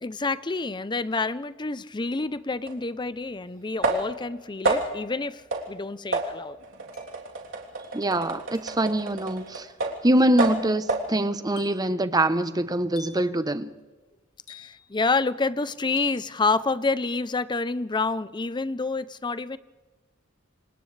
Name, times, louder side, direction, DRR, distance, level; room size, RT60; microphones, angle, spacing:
voice 1, 0.0-6.6 14.5-19.6, left 3 dB, 20° left, 0.6 m, -28 dB
sound 1, 2.7-2.8 3.8-4.3 4.6-5.1 5.5-5.7 6.1-10.1 10.4-11.1, right 2 dB, 65° right, 3.2 m, -29 dB
sound 2, 3.5-3.6 4.7-5.2 6.9-7.3 8.5-8.9 10.2-10.5 11.6-12.0 13.0-13.4 14.5-15.0 16.0-16.3, left 8 dB, 75° left, 4.2 m, -48 dB
voice 2, 7.9-9.7 10.0-13.7, right 1 dB, 20° right, 0.9 m, -24 dB
29.5 x 26.5 x 3.3 m
head